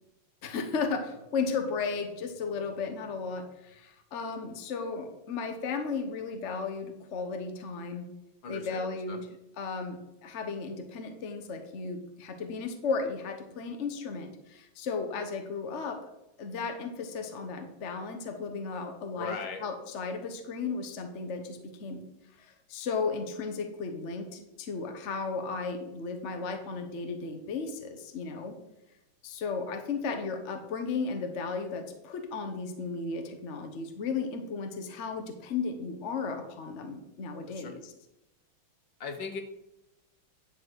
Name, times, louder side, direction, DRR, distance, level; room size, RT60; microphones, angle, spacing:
voice 1, 0.4-8.1 8.5-9.2 9.6-16.0 16.4-22.0 22.4-28.5 29.2-37.9, left 4 dB, 40° left, 5 dB, 1.2 m, -35 dB
voice 2, 8.4-9.2 19.2-19.6 37.5-37.7 39.0-39.4, left 4 dB, 65° left, 5 dB, 1.7 m, -38 dB
10.5 x 4.1 x 6.3 m, 0.88 s
omnidirectional pair, 2.4 m